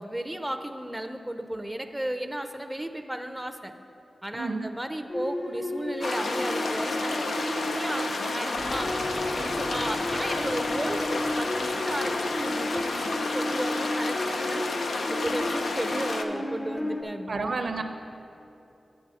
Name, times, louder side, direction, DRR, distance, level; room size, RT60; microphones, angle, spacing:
voice 1, 0.0-3.7 4.2-8.9 9.3-14.6 15.1-17.4, right 1 dB, 10° right, 7 dB, 0.5 m, -34 dB
voice 2, 4.3-4.7 17.3-17.8, right 3 dB, 70° right, 6 dB, 0.6 m, -30 dB
sound 1, 5.1-17.0, left 1 dB, 35° left, 0.8 m, -34 dB
sound 2, 6.0-16.2, left 3 dB, 90° left, 0.5 m, -31 dB
sound 3, 8.6-14.3, left 1 dB, 60° left, 1.3 m, -41 dB
9.3 x 7.9 x 4.1 m, 2.9 s
wide cardioid pair, 65°, 0 cm